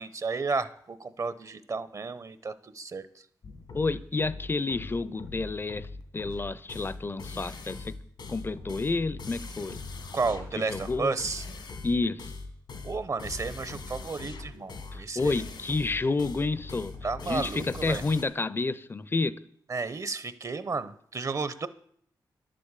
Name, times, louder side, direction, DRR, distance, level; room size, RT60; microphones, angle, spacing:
voice 1, 0.0-3.0 10.1-11.4 12.8-15.4 17.0-18.0 19.7-21.7, right 4 dB, 45° right, 0.9 m, -32 dB
sound 1, 3.4-18.2, left 3 dB, 80° left, 2.2 m, -41 dB
voice 2, 3.7-5.9 6.1-7.9 8.3-9.8 10.6-11.2 11.8-12.3 14.9-16.9 17.2-19.3, left 3 dB, 30° left, 0.6 m, -30 dB
11.0 x 7.7 x 8.3 m
cardioid pair, 85°, 8 cm